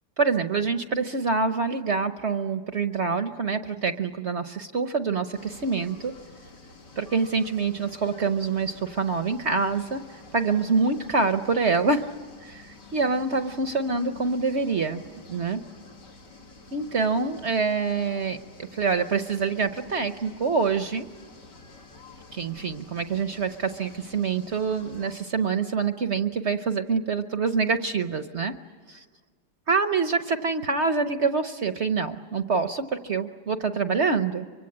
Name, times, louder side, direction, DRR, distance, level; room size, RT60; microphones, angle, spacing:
voice 1, 0.2-6.1 7.0-10.0 10.3-12.1 12.4-15.0 15.3-15.6 16.7-18.4 18.7-21.1 22.3-28.5 28.9-29.0 29.7-34.5, right 4 dB, 50° right, 9 dB, 1.0 m, -26 dB
sound 1, 5.3-25.2, left 3 dB, 80° left, 3.2 m, -49 dB
24.5 x 24.5 x 8.6 m, 1.5 s
omnidirectional pair, 1.8 m